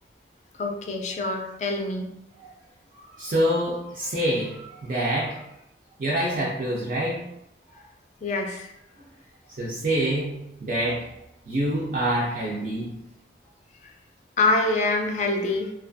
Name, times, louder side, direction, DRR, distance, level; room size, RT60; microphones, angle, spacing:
voice 1, 0.6-2.1 8.2-8.7 14.4-15.7, left 2 dB, 40° left, 2 dB, 0.3 m, -25 dB
voice 2, 2.9-5.5 6.0-7.3 7.7-7.8 9.0-9.1 9.5-11.1 11.5-13.1, right 1 dB, 45° right, -5 dB, 0.4 m, -27 dB
2.5 x 2.3 x 2.5 m, 0.84 s
head